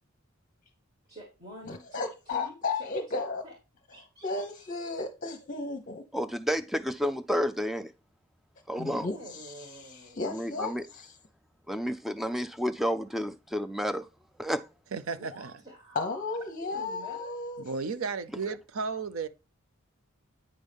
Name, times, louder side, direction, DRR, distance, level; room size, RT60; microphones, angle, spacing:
voice 1, 1.1-2.5 2.8-3.5 3.9-5.0 8.8-10.2 15.1-16.0 16.7-17.4, equal, 35° right, 1.8 m, -48 dB
voice 2, 1.7-3.4 4.2-6.0 8.8-11.1 15.9-17.6, left 3 dB, 40° left, 0.8 m, -34 dB
voice 3, 6.1-7.9 8.7-9.1 10.2-10.9 11.7-14.1 14.4-14.7, equal, ahead, 0.3 m, -30 dB
voice 4, 14.9-15.5 17.6-19.3, right 5 dB, 80° right, 0.6 m, -34 dB
8.8 x 5.4 x 3.4 m
head